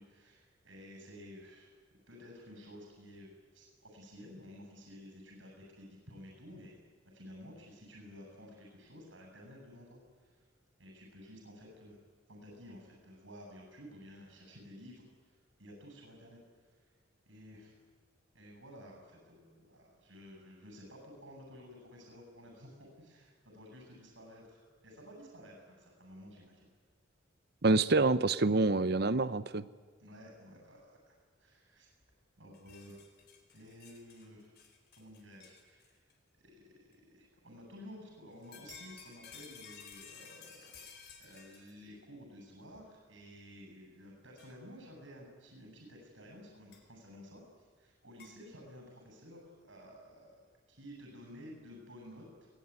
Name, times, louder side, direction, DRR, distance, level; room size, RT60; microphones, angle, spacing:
voice 1, 0.0-1.7 2.1-6.9 7.1-10.5 10.8-12.0 12.3-16.4 16.7-16.9 17.3-17.8 18.3-26.7 30.0-31.9 32.4-33.0 33.5-34.5 34.9-36.1 36.4-40.8 41.2-50.4 50.7-52.5, equal, 80° right, 0 dB, 7.4 m, -53 dB
voice 2, 27.6-29.6, right 3 dB, 55° right, 15 dB, 0.8 m, -27 dB
sound 1, 32.0-32.1 32.4-36.1 36.9-37.0 38.3-41.9 42.7-42.8 44.4-44.5 46.7-46.8 48.2-48.3, left 6 dB, 55° left, 4.1 m, -54 dB
22.5 x 19.5 x 9.7 m, 1.5 s
head